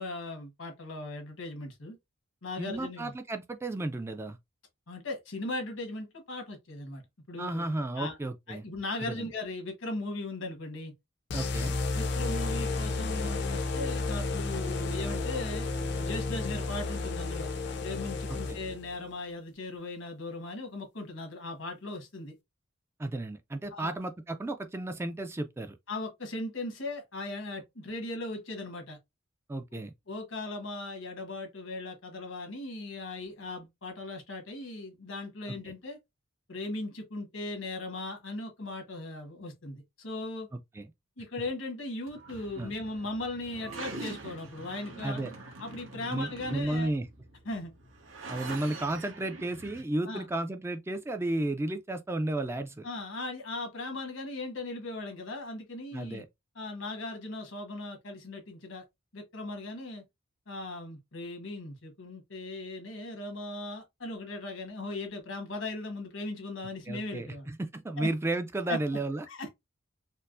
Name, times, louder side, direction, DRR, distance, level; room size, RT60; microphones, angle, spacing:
voice 1, 0.0-2.0 2.4-3.1 4.9-7.0 7.3-7.7 8.0-8.2 8.5-10.9 11.9-15.7 16.0-17.5 17.8-22.3 23.7-23.9 25.9-29.0 29.7-36.0 36.5-40.5 41.2-45.2 45.6-46.9 47.4-47.7 50.0-50.2 52.8-56.2 56.5-58.8 59.1-60.0 60.5-67.5 68.0-68.1 68.7-68.8 69.3-69.5, left 2 dB, 80° left, 1.2 m, -38 dB
voice 2, 2.6-4.4 7.4-8.6 9.0-9.3 11.3-11.8 18.3-18.6 23.0-25.8 29.5-29.9 40.5-40.9 42.6-42.7 45.0-45.3 46.1-47.1 48.3-52.9 55.9-56.3 66.9-69.3, right 2 dB, 15° right, 0.3 m, -33 dB
sound 1, 11.3-18.9, left 3 dB, 60° left, 0.6 m, -32 dB
sound 2, 42.1-49.8, right 3 dB, 85° right, 1.0 m, -44 dB
4.4 x 2.0 x 2.4 m
head